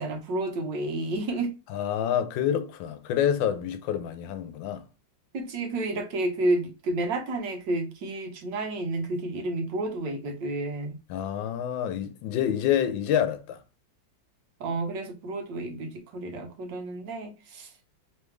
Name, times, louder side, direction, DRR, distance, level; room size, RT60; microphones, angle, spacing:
voice 1, 0.0-1.5 5.3-11.0 14.6-17.7, right 2 dB, 75° right, 1.6 m, -30 dB
voice 2, 1.7-4.8 11.1-13.6, left 9 dB, 90° left, 1.4 m, -27 dB
3.8 x 3.4 x 3.1 m
omnidirectional pair, 2.0 m